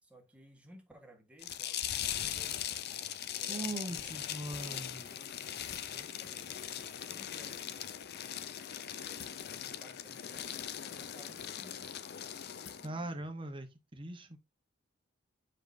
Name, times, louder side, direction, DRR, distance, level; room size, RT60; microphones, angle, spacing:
voice 1, 0.0-2.8 3.3-8.0 8.8-12.3 12.5-13.3, equal, 5° right, 1.5 m, -58 dB
sound 1, 1.4-12.9, left 10 dB, 55° left, 0.5 m, -40 dB
voice 2, 3.5-5.0 12.8-14.4, right 1 dB, 25° right, 1.1 m, -41 dB
sound 2, 5.7-6.1 6.8-6.9 7.9-8.4 9.2-9.5 10.4-10.5 11.3-11.9 12.6-13.0, left 6 dB, 70° left, 1.1 m, -54 dB
7.3 x 4.8 x 2.7 m
head